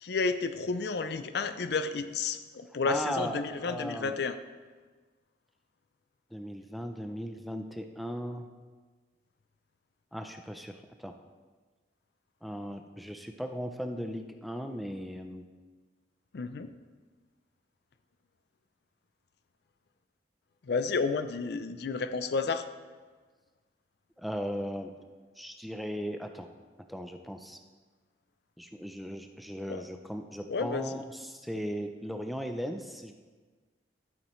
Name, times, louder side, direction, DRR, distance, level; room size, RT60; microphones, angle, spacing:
voice 1, 0.0-4.4 16.3-16.7 20.6-22.7 29.7-29.8 30.5-31.0, left 4 dB, 60° left, 11 dB, 0.4 m, -31 dB
voice 2, 2.8-4.1 6.3-8.5 10.1-11.1 12.4-15.5 24.2-24.9 25.4-26.5 26.9-27.6 28.6-33.1, equal, ahead, 5 dB, 0.4 m, -37 dB
11.5 x 8.6 x 3.1 m, 1.4 s
head